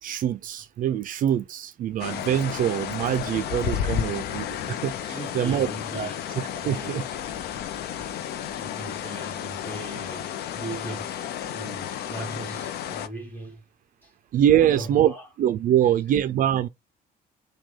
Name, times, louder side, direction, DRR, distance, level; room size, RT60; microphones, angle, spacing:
voice 1, 0.0-5.7 5.9-7.0 14.3-15.1 15.4-16.7, right 10 dB, 55° right, 0.4 m, -24 dB
sound 1, 2.0-13.1, left 10 dB, 80° left, 0.5 m, -32 dB
voice 2, 5.1-6.2 6.6-7.0 8.6-11.1 11.5-13.6 14.0-14.1 14.6-15.3 15.8-15.9, right 2 dB, 10° left, 1.7 m, -38 dB
6.1 x 2.3 x 3.5 m
cardioid pair, 140°, 16 cm